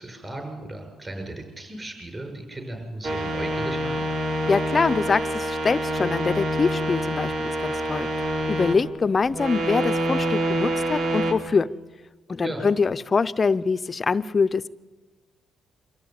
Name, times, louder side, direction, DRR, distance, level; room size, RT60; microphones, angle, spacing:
voice 1, 0.0-4.0 12.4-12.7, right 1 dB, 25° right, 4 dB, 7.3 m, -36 dB
sound 1, 3.0-8.8 9.2-11.3, right 1 dB, 65° right, 3.5 m, -26 dB
voice 2, 4.5-8.1 8.5-11.7 12.3-14.7, left 4 dB, 35° left, 13 dB, 0.6 m, -24 dB
25.0 x 14.0 x 9.7 m, 1.3 s
cardioid pair, 90°, 0 cm